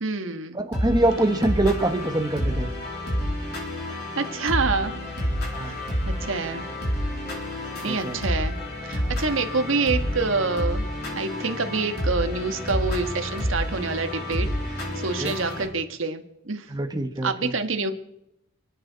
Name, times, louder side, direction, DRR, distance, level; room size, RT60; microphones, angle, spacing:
voice 1, 0.0-0.6 4.1-4.9 5.6-5.8 6.1-6.6 7.8-8.6 8.8-10.8 11.1-16.7 17.2-17.9, right 4 dB, 80° right, 7 dB, 1.4 m, -27 dB
voice 2, 0.5-2.7 5.5-5.8 7.8-8.2 15.2-15.3 16.7-17.5, right 1 dB, 20° right, 6 dB, 1.3 m, -24 dB
sound 1, 0.7-15.6, equal, 55° left, 6.4 m, -29 dB
29.0 x 9.8 x 4.0 m, 0.83 s
head